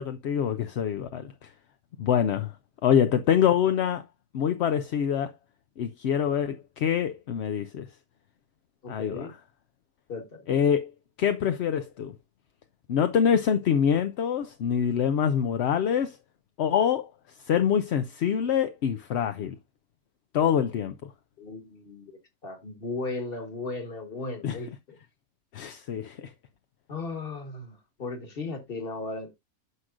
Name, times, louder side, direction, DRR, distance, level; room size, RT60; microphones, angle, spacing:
voice 1, 0.0-1.5 2.0-2.5 2.8-4.0 4.3-5.3 5.8-7.9 8.9-9.3 10.5-10.9 11.2-12.1 12.9-16.2 16.6-17.1 17.4-19.6 20.3-21.1 24.4-24.6 25.5-26.3, left 8 dB, 60° left, 0.8 m, -25 dB
voice 2, 8.8-9.3 10.1-10.4 21.4-25.0 26.9-29.4, left 3 dB, 45° left, 1.7 m, -36 dB
9.7 x 6.3 x 2.4 m
omnidirectional pair, 1.4 m